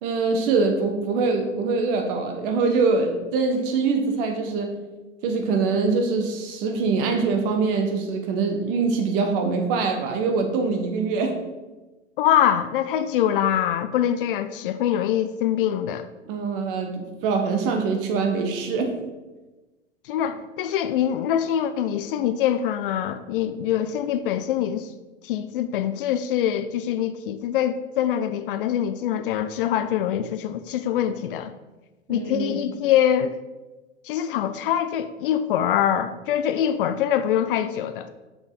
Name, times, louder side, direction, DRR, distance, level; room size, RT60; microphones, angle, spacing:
voice 1, 0.0-4.8 5.2-11.3 16.3-19.0 32.1-32.6, right 4 dB, 45° right, 5 dB, 1.3 m, -24 dB
voice 2, 12.2-16.0 20.1-24.9 25.2-31.5 32.1-33.3 34.0-38.1, left 10 dB, 45° left, 11 dB, 0.5 m, -24 dB
6.3 x 6.1 x 3.9 m, 1.1 s
figure-of-eight pair, 95°, 37 cm